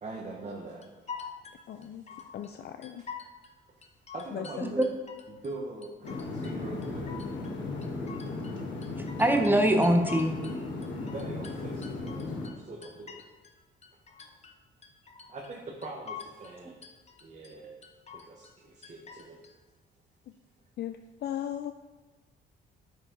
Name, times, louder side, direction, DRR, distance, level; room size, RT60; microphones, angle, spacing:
voice 1, 0.0-0.9 1.7-2.2 4.1-4.9 5.3-7.1 11.1-13.2 15.3-16.8 17.2-17.7 18.1-19.4, right 2 dB, 35° right, -1 dB, 1.0 m, -42 dB
sound 1, 0.8-2.5 2.8-3.5 3.8-5.5 5.8-6.6 6.8-8.6 8.8-10.6 10.8-13.6 13.8-14.6 14.8-15.6 15.8-16.6 16.8-17.5 17.8-18.6 18.8-19.5, left 7 dB, 35° left, 0.8 m, -46 dB
voice 2, 1.7-2.0 2.3-3.0 4.3-4.8 20.8-21.7, left 10 dB, 55° left, 8 dB, 0.4 m, -37 dB
sound 2, 6.0-12.5, left 3 dB, 70° left, 1.2 m, -36 dB
voice 3, 9.0-10.3, right 1 dB, 10° right, 4 dB, 0.9 m, -23 dB
8.7 x 4.8 x 3.8 m, 1.2 s
cardioid pair, 90°, 20 cm